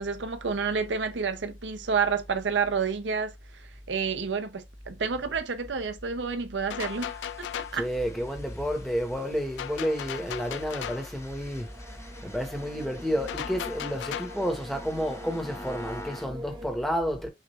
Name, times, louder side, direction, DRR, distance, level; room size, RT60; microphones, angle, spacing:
voice 1, 0.0-7.2 7.5-7.9, right 5 dB, 85° right, 0.6 m, -29 dB
sound 1, 6.7-7.9 9.6-11.1 13.3-14.4, left 10 dB, 80° left, 0.3 m, -36 dB
sound 2, 6.8-16.3, left 1 dB, 15° left, 0.7 m, -48 dB
voice 2, 7.7-17.3, equal, ahead, 1.0 m, -31 dB
sound 3, 11.5-16.7, equal, 25° right, 0.6 m, -45 dB
6.2 x 2.4 x 3.0 m
head